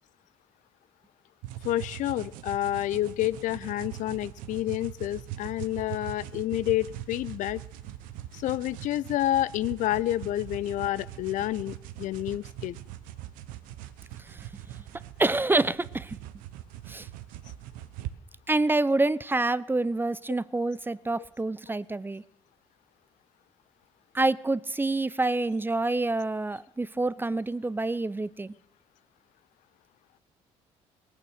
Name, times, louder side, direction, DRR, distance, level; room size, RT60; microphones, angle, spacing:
sound 1, 1.4-18.1, right 13 dB, 75° right, 0.8 m, -42 dB
voice 1, 1.6-7.6 8.3-12.8, left 14 dB, 65° left, 19 dB, 0.5 m, -29 dB
voice 2, 15.2-16.2 16.9-17.1 18.5-22.2 24.1-28.5, right 2 dB, 15° right, 19 dB, 0.5 m, -27 dB
19.0 x 9.3 x 6.5 m, 0.82 s
hypercardioid pair, 55°, 14 cm